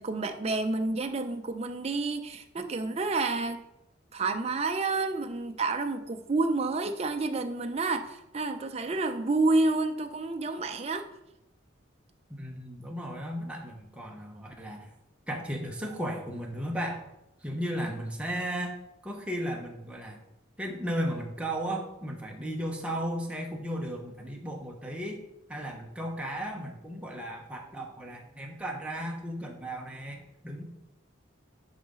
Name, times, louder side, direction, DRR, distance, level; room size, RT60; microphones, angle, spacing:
voice 1, 0.0-3.6 4.1-11.1, right 3 dB, 30° right, 7 dB, 0.5 m, -29 dB
voice 2, 12.3-14.9 15.3-17.1 17.4-18.8 19.0-20.2 20.6-25.2 25.5-30.6, equal, 5° right, 0 dB, 0.8 m, -35 dB
10.0 x 4.0 x 3.7 m, 0.89 s
head